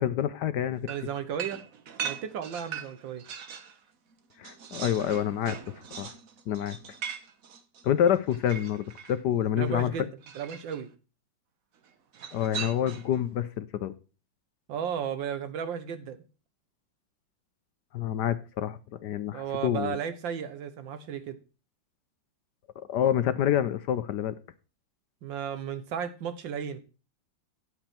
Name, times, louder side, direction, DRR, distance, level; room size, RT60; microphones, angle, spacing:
voice 1, 0.0-0.9 4.4-6.1 6.5-6.8 7.8-9.9 12.3-13.9 17.9-20.0 22.9-24.3, left 10 dB, 70° left, 1.1 m, -27 dB
sound 1, 0.9-3.8 4.1-9.2 10.2-10.8 12.1-13.2, right 7 dB, 55° right, 1.2 m, -40 dB
voice 2, 0.9-1.6 2.0-3.2 9.5-10.1 10.3-10.9 14.7-16.2 19.3-21.4 25.2-26.8, right 8 dB, 75° right, 1.7 m, -34 dB
10.0 x 7.9 x 4.3 m
omnidirectional pair, 2.1 m